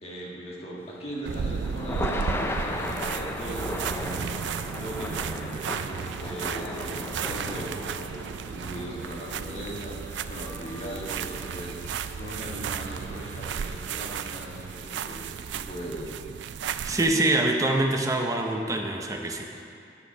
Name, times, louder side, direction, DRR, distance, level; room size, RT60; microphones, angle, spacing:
voice 1, 0.0-4.3 4.8-16.1 17.0-17.5, equal, 35° left, -4 dB, 1.6 m, -39 dB
Thunder / Rain, 0.9-15.1, left 1 dB, 15° left, 0.4 m, -38 dB
sound 1, 1.3-17.1, right 7 dB, 75° right, 0.3 m, -34 dB
voice 2, 16.8-19.5, right 2 dB, 20° right, 1 dB, 0.7 m, -25 dB
9.5 x 6.7 x 5.4 m, 2.5 s
head